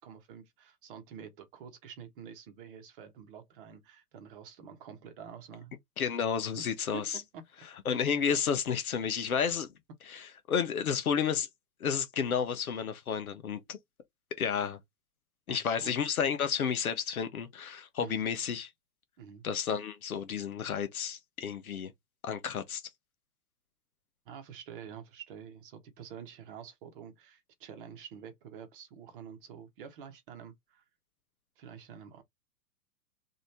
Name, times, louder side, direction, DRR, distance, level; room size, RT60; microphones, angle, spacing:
voice 1, 0.0-5.7 6.6-7.5 15.5-16.0 18.0-18.2 19.2-19.4 24.3-30.8 31.6-32.2, right 7 dB, 30° right, 1.1 m, -48 dB
voice 2, 6.0-7.2 7.8-9.7 10.1-11.5 11.8-13.8 14.4-14.8 15.5-18.7 19.4-21.9 22.2-22.8, left 7 dB, 60° left, 1.0 m, -31 dB
3.1 x 2.8 x 4.1 m
figure-of-eight pair, 110°, 50 cm